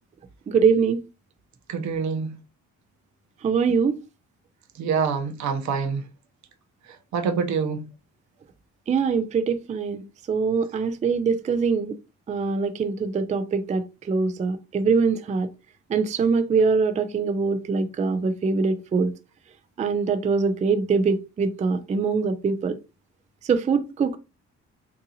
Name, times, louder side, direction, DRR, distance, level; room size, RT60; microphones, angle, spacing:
voice 1, 0.5-1.0 3.4-4.0 8.9-12.0 12.3-15.5 15.9-19.1 19.8-22.7 23.4-24.2, right 5 dB, 25° right, 0.4 m, -23 dB
voice 2, 1.7-2.3 4.8-6.0 7.1-7.8, right 5 dB, 65° right, 0.7 m, -25 dB
3.6 x 2.6 x 2.8 m
cardioid pair, 90°, 30 cm